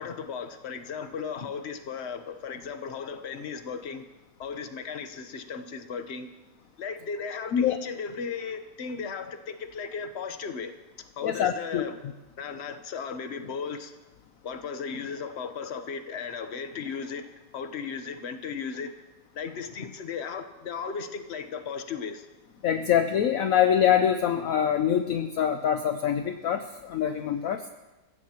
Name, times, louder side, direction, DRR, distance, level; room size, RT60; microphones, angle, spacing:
voice 1, 0.0-4.0 4.4-6.3 6.8-10.7 11.0-11.9 12.4-13.9 14.4-17.3 17.5-18.9 19.3-22.2, left 6 dB, 45° left, 8 dB, 1.1 m, -36 dB
voice 2, 11.2-11.9 22.6-27.6, left 9 dB, 65° left, 7 dB, 1.0 m, -24 dB
24.0 x 15.5 x 3.0 m, 1.1 s
omnidirectional pair, 1.8 m